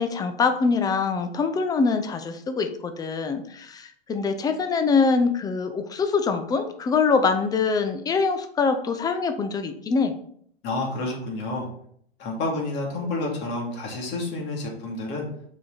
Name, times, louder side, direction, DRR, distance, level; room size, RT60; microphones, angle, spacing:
voice 1, 0.0-10.2, left 4 dB, 10° left, 8 dB, 0.6 m, -24 dB
voice 2, 10.6-11.7 12.2-15.3, left 2 dB, 35° left, -1 dB, 2.6 m, -29 dB
6.7 x 5.0 x 4.1 m, 0.65 s
hypercardioid pair, 110°, 32 cm